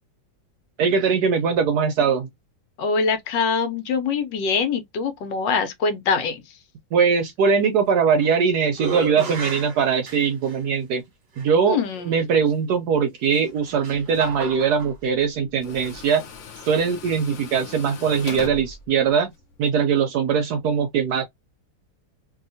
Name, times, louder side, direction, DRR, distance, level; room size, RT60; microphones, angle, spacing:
voice 1, 0.8-2.3 6.9-11.0 11.4-11.8 12.1-16.2 16.7-19.3 19.6-21.2, right 6 dB, 70° right, 1.0 m, -21 dB
voice 2, 2.8-6.6 11.7-12.3, left 5 dB, 75° left, 1.3 m, -24 dB
sound 1, 7.9-8.4 8.7-10.6 11.4-11.5 13.2-14.9, right 4 dB, 40° right, 1.0 m, -33 dB
Tools, 13.4-19.7, left 5 dB, 60° left, 0.8 m, -41 dB
2.8 x 2.7 x 2.6 m
omnidirectional pair, 2.0 m